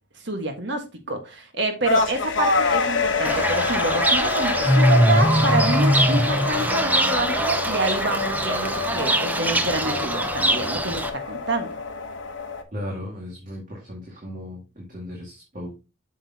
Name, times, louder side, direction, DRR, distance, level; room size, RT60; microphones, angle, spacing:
voice 1, 0.2-11.8, right 2 dB, 55° right, 1.5 m, -28 dB
sound 1, 1.8-12.6, left 4 dB, 65° left, 1.1 m, -26 dB
Fowl / Bird, 3.2-11.1, right 1 dB, 10° right, 0.5 m, -22 dB
voice 2, 12.7-15.8, left 1 dB, 40° right, 2.0 m, -36 dB
7.5 x 6.5 x 2.8 m
head